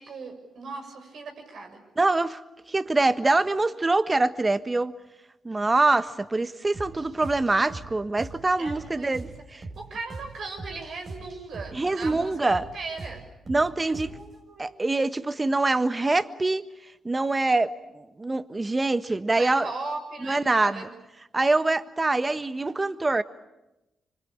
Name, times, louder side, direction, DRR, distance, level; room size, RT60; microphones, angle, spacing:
voice 1, 0.0-1.8 8.6-9.1 9.8-13.2 13.8-14.7 19.3-20.9, right 3 dB, 65° right, 6.6 m, -38 dB
voice 2, 2.0-2.4 2.7-4.9 5.4-9.6 11.7-12.7 13.5-14.1 14.6-16.6 17.0-19.7 20.2-20.9 21.3-23.2, right 2 dB, 25° right, 1.5 m, -24 dB
sound 1, 6.7-14.4, right 3 dB, 45° right, 6.3 m, -41 dB
26.5 x 25.0 x 8.8 m
hypercardioid pair, 45°, 0 cm